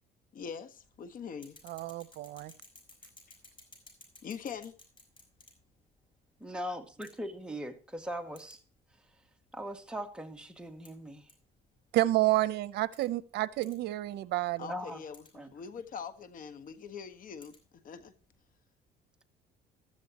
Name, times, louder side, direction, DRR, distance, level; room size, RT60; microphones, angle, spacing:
voice 1, 0.3-1.6 4.2-4.7 14.6-18.1, left 6 dB, 55° left, 1.5 m, -43 dB
sound 1, 0.8-18.5, left 2 dB, 30° left, 5.2 m, -61 dB
voice 2, 1.7-2.5 11.9-14.7, right 17 dB, 80° right, 0.8 m, -29 dB
voice 3, 6.4-8.6 9.5-11.3 14.7-15.0 15.3-15.5, equal, 5° right, 2.1 m, -40 dB
15.0 x 13.0 x 3.0 m
cardioid pair, 110°, 17 cm